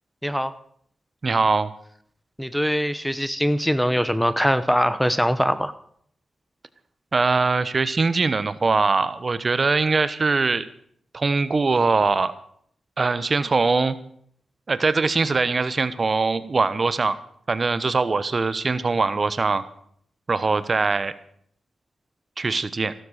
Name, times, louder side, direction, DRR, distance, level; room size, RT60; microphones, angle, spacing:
voice 1, 1.2-1.7 7.1-10.7 11.1-12.3 13.0-14.0 14.7-17.2 17.5-19.6 20.3-21.1 22.4-22.9, right 4 dB, 40° right, 14 dB, 1.1 m, -22 dB
voice 2, 2.4-5.7, equal, ahead, 14 dB, 0.9 m, -22 dB
15.0 x 13.0 x 6.5 m, 0.64 s
cardioid pair, 75°, 0 cm